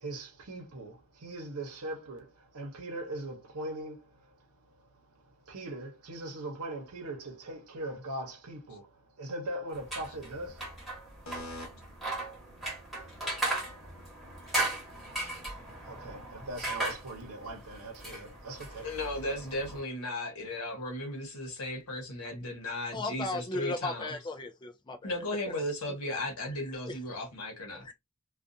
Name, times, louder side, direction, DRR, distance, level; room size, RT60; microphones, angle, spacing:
voice 1, 0.0-2.3 2.5-4.0 5.5-8.9 9.2-10.6 15.9-18.9, right 1 dB, 90° right, 0.8 m, -40 dB
sound 1, 9.7-19.8, right 2 dB, ahead, 1.1 m, -37 dB
voice 2, 11.3-11.6 18.1-18.2 18.7-24.2 25.0-27.8, left 1 dB, 75° left, 1.0 m, -36 dB
voice 3, 22.9-25.2 27.8-27.9, left 2 dB, 20° left, 0.3 m, -36 dB
2.4 x 2.3 x 2.6 m
head